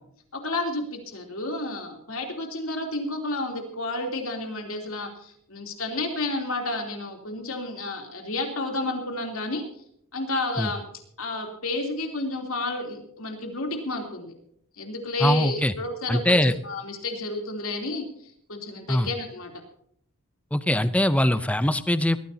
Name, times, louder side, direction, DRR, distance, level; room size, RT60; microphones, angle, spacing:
voice 1, 0.3-9.6 10.1-10.8 11.2-14.3 14.8-19.5, left 2 dB, 65° left, 3 dB, 3.2 m, -31 dB
voice 2, 15.2-15.7 16.1-16.5 18.9-19.1 20.5-22.2, left 1 dB, 5° left, 13 dB, 0.6 m, -22 dB
20.5 x 15.0 x 2.8 m, 0.69 s
head